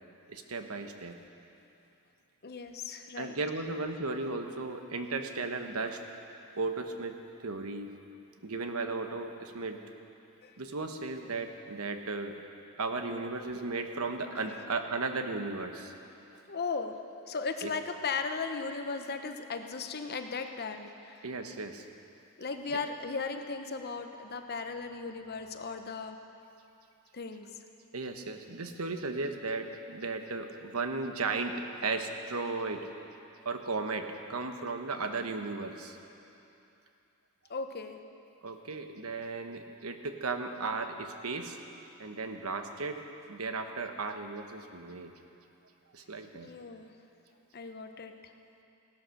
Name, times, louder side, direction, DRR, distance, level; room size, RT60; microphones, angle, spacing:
voice 1, 0.3-1.2 3.2-6.0 6.6-7.9 8.4-9.8 10.6-12.4 12.8-15.9 17.6-17.7 21.2-21.8 27.9-32.9 33.4-36.0 38.4-41.6 42.0-45.1 45.9-46.5, right 3 dB, 90° right, 6 dB, 1.1 m, -35 dB
voice 2, 2.4-3.3 10.4-10.6 14.3-14.6 16.5-17.0 17.3-21.3 22.4-26.2 27.1-27.6 37.5-38.0 46.3-46.9 47.5-48.3, left 4 dB, 50° left, 7 dB, 0.9 m, -37 dB
17.0 x 12.0 x 6.5 m, 2.8 s
head